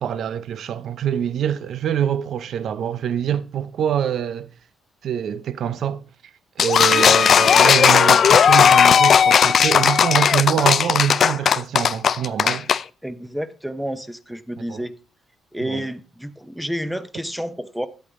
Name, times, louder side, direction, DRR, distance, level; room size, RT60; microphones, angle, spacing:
voice 1, 0.0-4.5 5.0-6.0 6.6-12.7 14.7-14.8 15.6-15.9, right 9 dB, 65° right, 0.6 m, -25 dB
sound 1, 6.6-12.8, left 7 dB, 55° left, 0.4 m, -15 dB
voice 2, 13.0-14.9 15.5-17.9, equal, 5° right, 0.9 m, -30 dB
11.0 x 8.2 x 3.6 m
cardioid pair, 90°, 0 cm